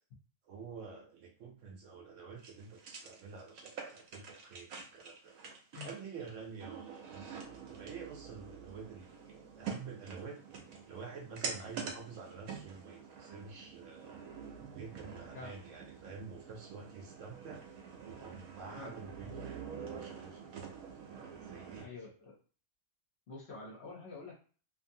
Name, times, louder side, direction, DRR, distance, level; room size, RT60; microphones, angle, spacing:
voice 1, 0.4-5.4 5.8-10.4 10.9-14.1 14.7-17.6 18.0-20.8 21.1-21.9, right 5 dB, 65° right, 1 dB, 0.9 m, -49 dB
sound 1, 2.4-21.9, right 6 dB, 90° right, 1.1 m, -46 dB
voice 2, 21.8-22.4 23.3-24.3, left 4 dB, 55° left, -2 dB, 0.9 m, -47 dB
2.6 x 2.5 x 2.6 m, 0.40 s
omnidirectional pair, 1.5 m